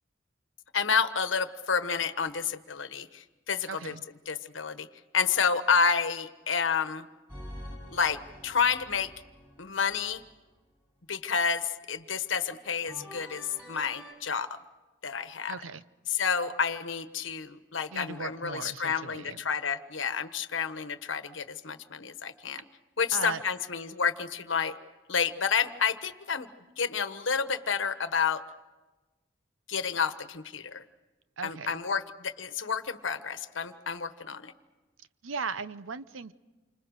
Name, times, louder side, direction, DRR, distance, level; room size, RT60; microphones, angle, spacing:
voice 1, 0.7-3.9 4.3-4.9 5.1-7.1 7.9-9.1 9.6-10.2 11.1-14.5 15.0-15.5 16.1-22.6 23.0-24.7 25.1-26.5 26.8-28.4 29.7-30.8 31.4-34.5, left 6 dB, 75° left, 10 dB, 1.2 m, -30 dB
voice 2, 3.7-4.0 15.5-15.8 17.9-19.5 23.1-23.4 31.4-31.7 35.2-36.3, right 5 dB, 85° right, 14 dB, 0.8 m, -37 dB
sound 1, 7.3-10.3 12.9-14.1, equal, 10° right, 7.8 m, -46 dB
28.5 x 26.0 x 6.5 m, 1.2 s
head